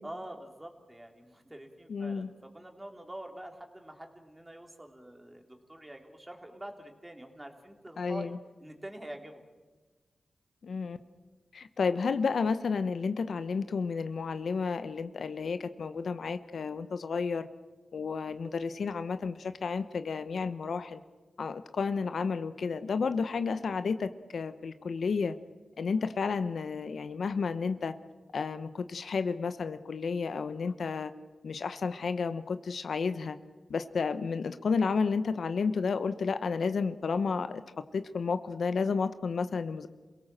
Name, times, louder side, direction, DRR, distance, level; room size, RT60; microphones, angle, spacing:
voice 1, 0.0-8.3 8.6-9.4, right 1 dB, 20° right, 3 dB, 3.2 m, -46 dB
voice 2, 1.9-2.3 8.0-8.4 10.6-11.0 11.5-17.5 17.9-21.0 21.4-25.4 25.8-27.9 28.3-31.1 31.4-33.4 33.7-37.6 37.9-39.9, left 5 dB, 80° left, 11 dB, 0.9 m, -31 dB
27.5 x 17.5 x 7.6 m, 1.3 s
cardioid pair, 60°, 0 cm